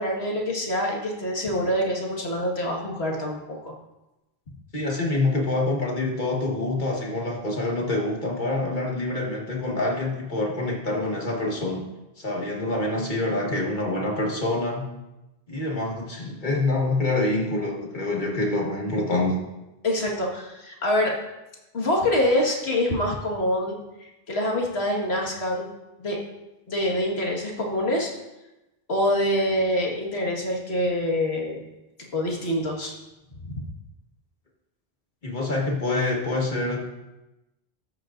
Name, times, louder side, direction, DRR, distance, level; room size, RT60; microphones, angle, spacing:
voice 1, 0.0-3.7 19.8-21.1 21.7-23.8 24.3-25.6 26.0-26.2 26.7-28.1 28.9-31.6 32.1-32.9 33.4-33.6, left 1 dB, 85° left, -1 dB, 2.0 m, -25 dB
voice 2, 4.7-11.8 12.2-14.9 15.5-19.4 35.2-36.8, left 2 dB, 50° left, -1 dB, 1.6 m, -26 dB
13.5 x 7.8 x 2.6 m, 0.98 s
omnidirectional pair, 1.0 m